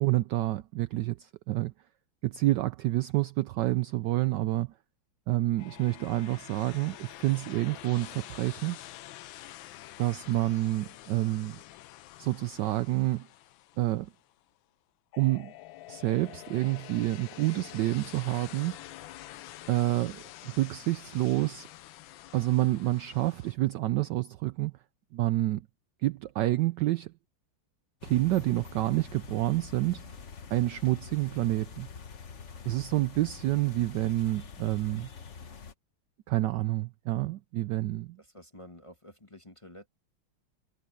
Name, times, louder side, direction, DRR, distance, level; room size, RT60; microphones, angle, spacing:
voice 1, 0.0-1.7 2.2-4.7 5.3-8.8 10.0-11.6 12.2-13.3 13.8-14.1 15.2-15.5 15.9-18.8 19.7-21.7 22.3-24.7 25.1-25.6 26.0-27.1 28.0-30.0 30.5-31.9 32.7-35.1 36.3-38.2, right 16 dB, 75° right, 1.0 m, -28 dB
sound 1, 5.6-14.4 15.1-23.5, left 15 dB, 75° left, 1.4 m, -47 dB
sound 2, 28.0-35.7, left 6 dB, 40° left, 1.2 m, -46 dB
voice 2, 38.2-39.9, left 1 dB, 15° left, 1.3 m, -50 dB
omnidirectional pair, 2.3 m